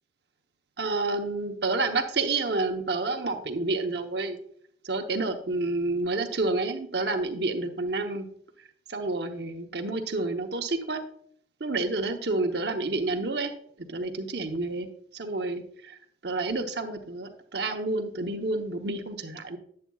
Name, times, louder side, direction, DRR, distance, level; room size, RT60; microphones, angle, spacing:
voice 1, 0.8-4.4 4.8-8.3 8.9-11.0 11.6-13.5 13.8-14.9 15.1-16.0 16.2-19.6, right 3 dB, 65° right, 4 dB, 0.9 m, -29 dB
8.7 x 8.5 x 2.3 m, 0.64 s
head